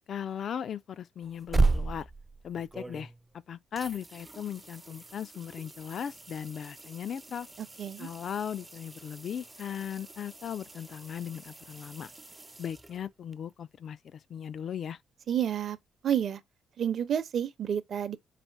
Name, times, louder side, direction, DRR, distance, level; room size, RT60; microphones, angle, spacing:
voice 1, 0.1-2.1 2.4-3.1 3.5-7.5 8.0-12.1 12.6-15.0, left 8 dB, 60° left, 0.4 m, -37 dB
sound 1, 1.2-3.4 3.8-13.3 16.1-16.2, right 3 dB, 15° right, 0.4 m, -36 dB
voice 2, 15.3-15.8 16.0-16.4 16.8-18.2, right 9 dB, 60° right, 0.6 m, -29 dB
4.1 x 2.1 x 4.5 m
cardioid pair, 90°, 0 cm